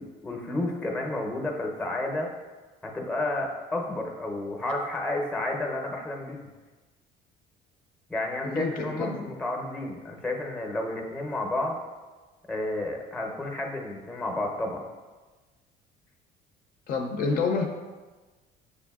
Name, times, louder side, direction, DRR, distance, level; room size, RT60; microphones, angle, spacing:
voice 1, 0.0-2.3 2.8-6.4 8.1-11.8 12.5-14.8, left 2 dB, 5° left, 1 dB, 0.6 m, -31 dB
voice 2, 8.4-9.2 16.9-17.7, left 4 dB, 55° left, 3 dB, 0.4 m, -28 dB
6.5 x 2.6 x 2.3 m, 1.3 s
cardioid pair, 120°, 18 cm